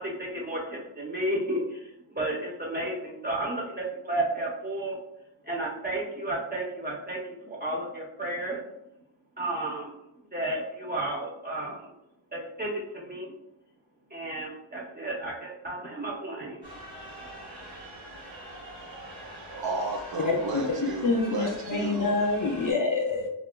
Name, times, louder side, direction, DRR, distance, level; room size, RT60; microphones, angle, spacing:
voice 1, 0.0-5.0 5.4-8.6 9.4-9.9 10.3-11.9 12.3-13.3 14.1-16.7, right 1 dB, 20° right, -3 dB, 0.9 m, -32 dB
sound 1, 16.6-22.7, right 1 dB, 70° right, 1.1 m, -43 dB
voice 2, 19.5-22.2, right 3 dB, 50° right, 0 dB, 0.6 m, -33 dB
voice 3, 20.2-20.7 21.0-23.3, left 3 dB, 45° left, 1 dB, 0.5 m, -26 dB
3.4 x 2.4 x 2.2 m, 0.83 s
wide cardioid pair, 70°, 46 cm